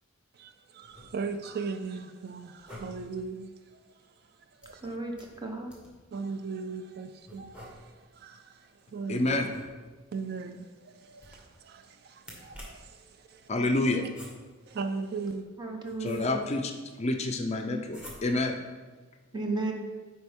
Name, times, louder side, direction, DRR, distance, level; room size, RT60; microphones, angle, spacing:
voice 1, 0.3-3.8 4.6-4.9 6.1-9.4 10.1-13.5 14.7-15.5, right 4 dB, 50° right, 0.4 m, -38 dB
sound 1, 0.8-1.5 2.5-3.2 4.6-6.1 7.3-8.2 9.4-10.2 11.1-11.7 12.2-13.0 13.9-14.7 15.4-16.6 17.9-18.6, left 1 dB, 5° right, 1.4 m, -49 dB
voice 2, 4.8-5.7 15.6-16.4 19.3-19.7, right 3 dB, 20° right, 0.9 m, -34 dB
voice 3, 9.1-9.5 13.5-14.0 16.0-16.7 17.0-18.6, left 2 dB, 30° left, 0.5 m, -28 dB
10.5 x 4.4 x 3.5 m
head